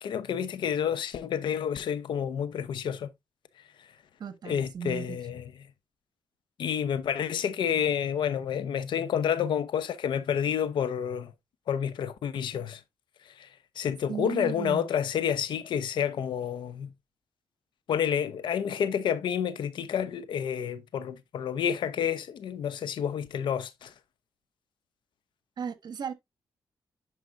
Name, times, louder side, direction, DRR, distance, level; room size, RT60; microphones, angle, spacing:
voice 1, 0.0-3.1 4.4-5.5 6.6-11.3 11.7-12.8 13.4-13.5 13.8-16.9 17.9-23.9, left 8 dB, 75° left, 0.9 m, -29 dB
voice 2, 4.2-5.2 14.1-14.9 25.6-26.1, right 7 dB, 60° right, 1.3 m, -35 dB
9.7 x 5.0 x 2.6 m
cardioid pair, 80°, 8 cm